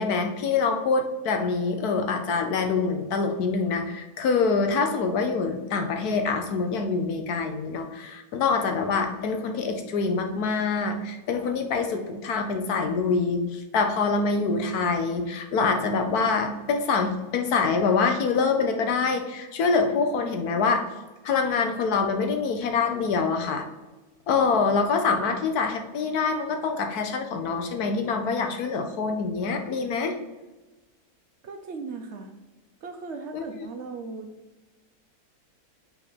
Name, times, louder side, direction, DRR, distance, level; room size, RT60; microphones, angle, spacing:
voice 1, 0.0-20.8 21.2-23.7 24.3-30.1 33.3-33.4, left 4 dB, 80° left, 5 dB, 1.4 m, -25 dB
voice 2, 31.4-32.3 32.8-34.3, right 4 dB, 55° right, 4 dB, 0.9 m, -37 dB
5.8 x 4.0 x 6.0 m, 1.2 s
omnidirectional pair, 1.6 m